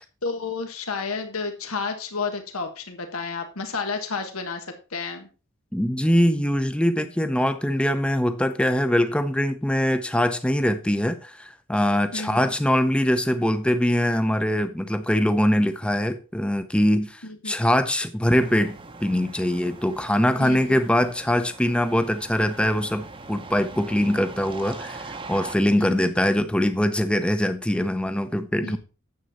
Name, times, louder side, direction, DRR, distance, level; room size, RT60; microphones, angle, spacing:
voice 1, 0.2-5.3 12.1-12.5 17.2-17.5 20.4-20.8 25.8-26.1 28.6-28.8, left 4 dB, 90° left, 1.5 m, -31 dB
voice 2, 5.7-28.8, equal, 5° left, 0.6 m, -23 dB
sound 1, 18.3-25.6, right 3 dB, 25° right, 0.8 m, -41 dB
9.5 x 7.7 x 4.2 m
head